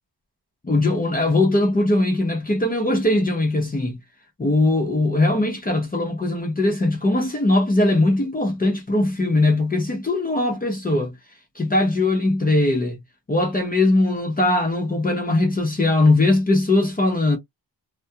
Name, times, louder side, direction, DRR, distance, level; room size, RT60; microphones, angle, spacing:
voice 1, 0.6-4.0 4.4-11.1 11.6-13.0 13.3-17.4, left 2 dB, 20° left, 0.6 m, -20 dB
2.3 x 2.0 x 2.7 m
wide cardioid pair, 130°, 43 cm